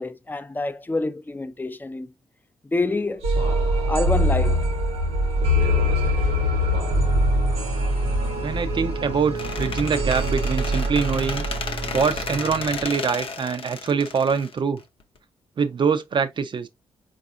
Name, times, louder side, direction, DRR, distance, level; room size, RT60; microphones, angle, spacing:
voice 1, 0.0-2.1 2.6-3.3 3.9-4.6, left 2 dB, 15° left, 0.5 m, -27 dB
sound 1, 3.2-12.9, equal, 85° right, 1.1 m, -23 dB
voice 2, 8.4-11.5 11.9-14.8 15.6-16.7, right 6 dB, 50° right, 0.5 m, -24 dB
Squeak, 9.4-15.2, left 5 dB, 60° left, 0.6 m, -33 dB
4.0 x 2.5 x 2.5 m
supercardioid pair, 45°, 11 cm